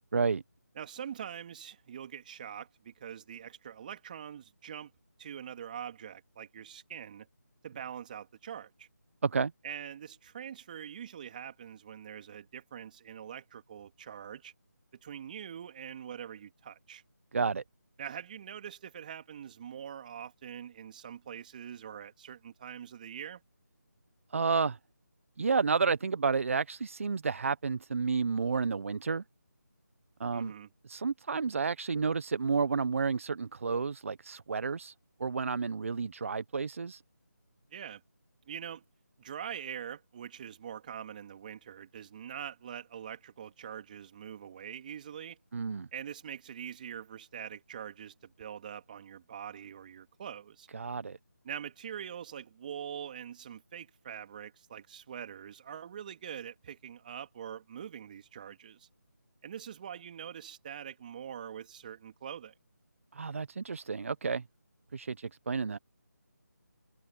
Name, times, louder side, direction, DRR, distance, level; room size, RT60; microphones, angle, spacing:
voice 1, 0.1-0.4 9.2-9.5 17.3-17.6 24.3-24.8 25.4-29.2 30.2-30.5 30.8-34.9 35.2-37.0 45.5-45.9 50.7-51.2 63.1-64.4 64.9-65.8, right 5 dB, 45° right, 1.1 m, -31 dB
voice 2, 0.8-4.9 5.2-7.3 7.6-8.9 9.6-14.5 15.0-17.0 18.0-23.4 30.3-30.7 37.7-38.0 38.5-38.8 39.2-45.4 45.9-50.7 51.4-58.9 59.4-62.5, right 9 dB, 30° right, 3.0 m, -44 dB
figure-of-eight pair, 160°, 10 cm